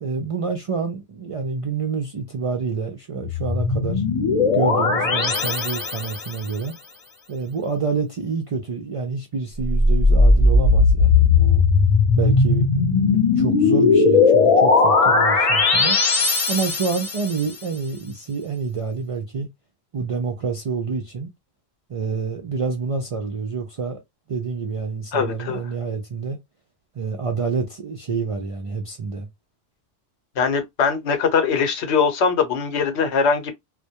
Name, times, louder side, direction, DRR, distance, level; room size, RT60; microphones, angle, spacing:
voice 1, 0.0-4.0 4.5-6.8 7.3-11.6 12.1-16.0 16.5-19.5 19.9-21.3 21.9-24.0 24.3-26.4 26.9-29.3, right 5 dB, 60° right, 0.3 m, -28 dB
sound 1, 3.2-6.3 9.7-17.3, left 4 dB, 40° left, 0.6 m, -17 dB
voice 2, 25.1-25.6 30.4-33.5, left 5 dB, 85° left, 1.0 m, -21 dB
2.2 x 2.1 x 2.7 m
omnidirectional pair, 1.1 m